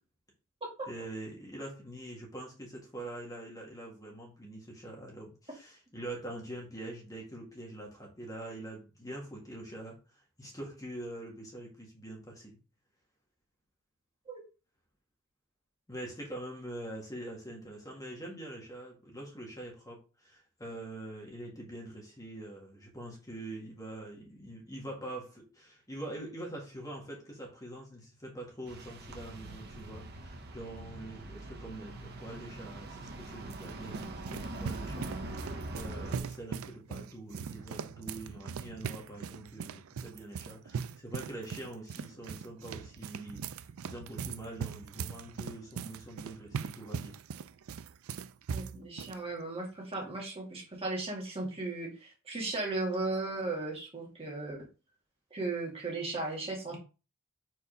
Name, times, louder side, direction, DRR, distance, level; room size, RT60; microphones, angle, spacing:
voice 1, 0.9-10.0 10.4-12.6 15.9-47.2, right 1 dB, 15° left, 1.8 m, -44 dB
sound 1, 28.7-36.2, right 2 dB, 50° right, 1.0 m, -43 dB
sound 2, 33.1-49.2, right 6 dB, 80° right, 0.4 m, -41 dB
voice 2, 48.5-54.6 55.3-56.8, right 2 dB, 30° right, 2.0 m, -36 dB
4.7 x 4.2 x 5.2 m
head